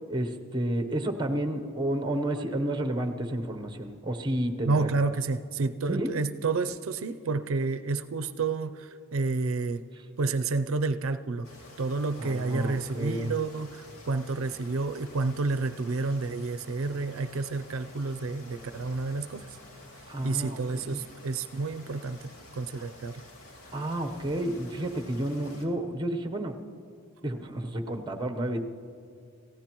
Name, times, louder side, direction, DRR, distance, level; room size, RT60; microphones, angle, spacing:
voice 1, 0.1-4.9 5.9-6.1 10.0-10.1 12.2-13.3 20.1-20.6 20.8-21.0 22.7-22.9 23.7-26.5 27.2-28.6, right 1 dB, 20° right, 5 dB, 0.9 m, -31 dB
voice 2, 4.6-9.8 10.2-11.5 11.8-19.6 20.2-23.2, right 3 dB, 70° right, 10 dB, 0.5 m, -30 dB
sound 1, 11.4-25.6, left 1 dB, 80° left, 2.4 m, -50 dB
27.0 x 15.5 x 3.0 m, 2.5 s
head